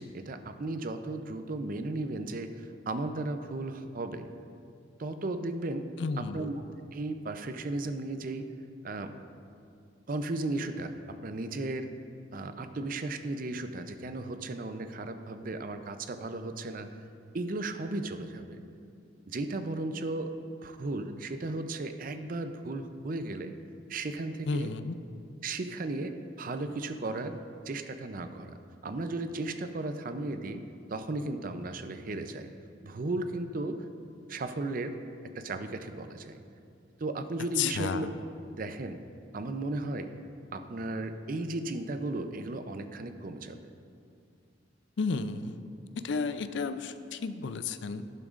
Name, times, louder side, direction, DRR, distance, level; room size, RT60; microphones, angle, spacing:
voice 1, 0.0-4.3 5.0-5.9 6.2-6.6 6.9-8.5 8.8-9.1 10.1-11.9 12.3-16.9 17.3-18.6 19.3-20.3 20.6-23.5 23.9-24.7 25.4-27.4 27.7-30.6 30.9-32.5 32.8-33.9 34.3-35.0 35.3-36.4 37.0-38.1 38.5-39.0 39.3-40.1 40.5-43.7, right 2 dB, 45° right, 8 dB, 0.5 m, -35 dB
voice 2, 6.0-6.5 24.5-24.9 37.6-38.1 45.0-45.6 46.0-48.0, left 5 dB, 70° left, 11 dB, 0.4 m, -32 dB
12.0 x 11.0 x 2.5 m, 2.4 s
head